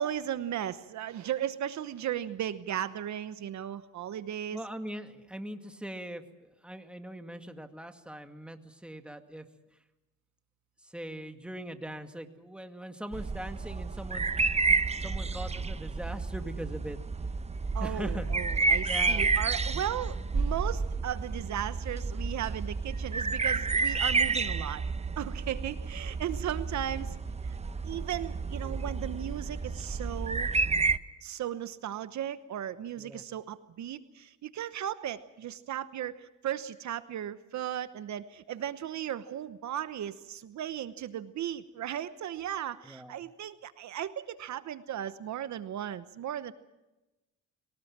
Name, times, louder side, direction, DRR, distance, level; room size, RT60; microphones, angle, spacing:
voice 1, 0.0-4.6 17.7-24.8 25.2-27.1 27.4-27.6 27.8-30.5 31.2-46.5, right 11 dB, 70° right, 13 dB, 1.1 m, -36 dB
voice 2, 4.5-9.5 10.8-14.3 15.0-17.0 17.8-18.3 18.8-19.3 30.6-30.9 33.0-33.2 42.8-43.2, right 1 dB, 5° right, 6 dB, 2.1 m, -41 dB
sound 1, 13.1-31.0, right 4 dB, 20° right, 0.9 m, -30 dB
22.5 x 19.0 x 7.5 m, 1.0 s
cardioid pair, 90°, 30 cm